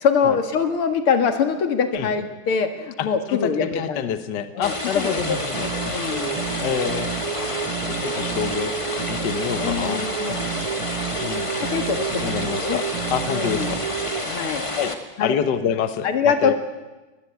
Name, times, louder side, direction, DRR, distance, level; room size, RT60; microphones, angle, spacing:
voice 1, 0.0-4.1 4.5-5.2 5.8-6.4 7.4-7.8 9.6-10.5 11.6-12.8 13.3-13.7 14.2-14.7 15.2-15.4 16.0-16.5, left 6 dB, 80° left, 8 dB, 2.8 m, -24 dB
voice 2, 3.0-5.7 6.6-7.1 7.8-8.7 9.1-10.1 11.2-11.5 12.2-13.6 14.8-16.5, left 8 dB, 60° left, 11 dB, 1.6 m, -27 dB
sound 1, 4.6-14.9, left 2 dB, 15° left, 1.8 m, -29 dB
sound 2, 5.2-14.2, right 10 dB, 85° right, 1.9 m, -31 dB
23.0 x 19.5 x 8.2 m, 1.1 s
omnidirectional pair, 2.4 m